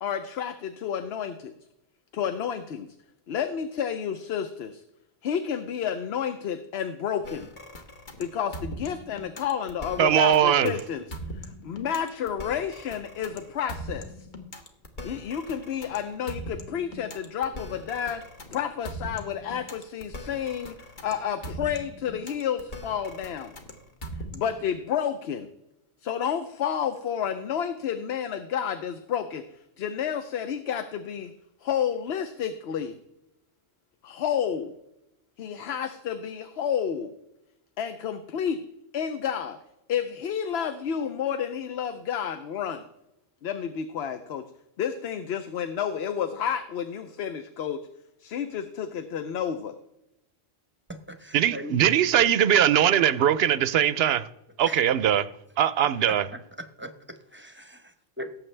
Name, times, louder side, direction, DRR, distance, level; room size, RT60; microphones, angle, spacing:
voice 1, 0.0-1.5 2.1-2.9 3.3-4.8 5.2-7.5 8.2-11.0 11.3-14.1 15.0-18.2 18.5-23.5 24.3-25.5 26.0-29.5 29.8-31.3 31.6-33.0 34.0-34.7 35.4-37.1 37.8-38.6 38.9-39.6 39.9-42.8 43.4-44.5 44.8-47.9 48.2-49.7, left 8 dB, 75° left, 0.9 m, -30 dB
sound 1, 7.2-24.6, equal, 50° left, 1.3 m, -40 dB
voice 2, 10.0-10.7 51.3-54.3 54.6-55.3 55.6-56.3, right 10 dB, 70° right, 0.8 m, -21 dB
voice 3, 50.9-51.7 54.7-54.8 56.6-56.9 57.3-58.3, equal, 10° right, 0.8 m, -39 dB
17.5 x 7.6 x 3.3 m
omnidirectional pair, 1.1 m